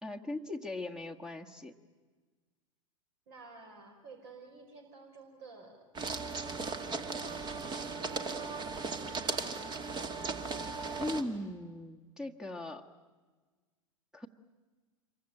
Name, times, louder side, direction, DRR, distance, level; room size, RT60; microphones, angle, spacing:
voice 1, 0.0-1.7 11.0-12.9 14.1-14.3, left 2 dB, 5° right, 7 dB, 1.6 m, -39 dB
voice 2, 3.3-5.9 6.4-9.0, right 4 dB, 55° right, 3 dB, 5.4 m, -52 dB
sound 1, 5.9-11.2, right 4 dB, 25° right, 2.1 m, -37 dB
27.0 x 23.5 x 9.1 m, 1.4 s
figure-of-eight pair, 90°, 17 cm